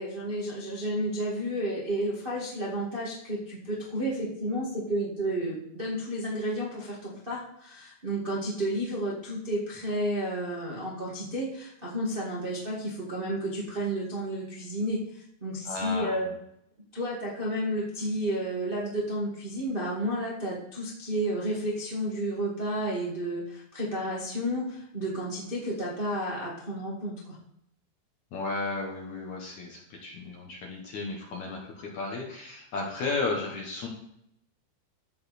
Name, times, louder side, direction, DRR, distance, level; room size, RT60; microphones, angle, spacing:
voice 1, 0.0-16.3 16.9-27.4, right 1 dB, 70° right, -6 dB, 0.5 m, -31 dB
voice 2, 15.7-16.2 28.3-33.9, left 3 dB, 65° left, -1 dB, 2.0 m, -34 dB
15.0 x 5.2 x 4.3 m, 0.75 s
omnidirectional pair, 5.2 m